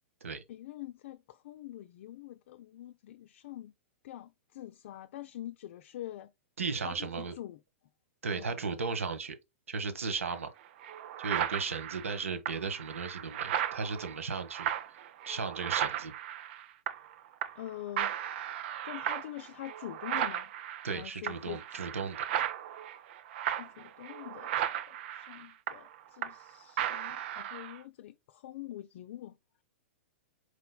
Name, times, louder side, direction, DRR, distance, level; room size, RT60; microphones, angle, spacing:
voice 1, 0.5-3.7 4.0-6.3 6.8-7.6 8.3-8.7 17.5-18.2 18.8-20.5 20.9-21.8 23.5-29.4, left 13 dB, 60° left, 0.4 m, -45 dB
voice 2, 6.6-7.3 8.2-9.4 9.7-10.5 11.2-14.7 15.3-16.1 20.8-22.2, right 5 dB, 80° right, 1.1 m, -35 dB
sound 1, 10.3-10.4 10.8-17.1 17.4-17.7 18.0-26.5 26.8-27.8, right 10 dB, 55° right, 0.6 m, -36 dB
4.7 x 4.2 x 2.2 m
hypercardioid pair, 110°, 7 cm